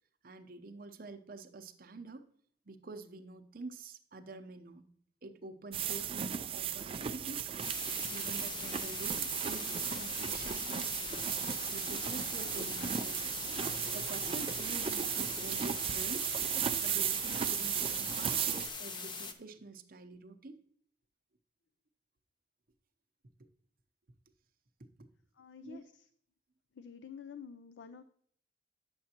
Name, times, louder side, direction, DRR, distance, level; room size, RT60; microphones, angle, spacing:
voice 1, 0.2-2.3 2.7-4.9 5.2-7.5 8.1-11.0 11.7-13.4 13.9-16.3 16.8-20.6 25.0-25.1 25.6-25.9, right 3 dB, 50° right, 7 dB, 0.7 m, -47 dB
sound 1, 5.7-18.7, right 9 dB, 30° right, 0.3 m, -35 dB
sound 2, 7.6-19.3, left 4 dB, 25° left, 0.6 m, -42 dB
sound 3, 11.9-17.5, left 1 dB, 45° left, 3.0 m, -62 dB
voice 2, 25.4-26.0 26.7-28.0, left 6 dB, 75° left, 11 dB, 0.4 m, -49 dB
9.5 x 7.1 x 2.9 m, 0.63 s
head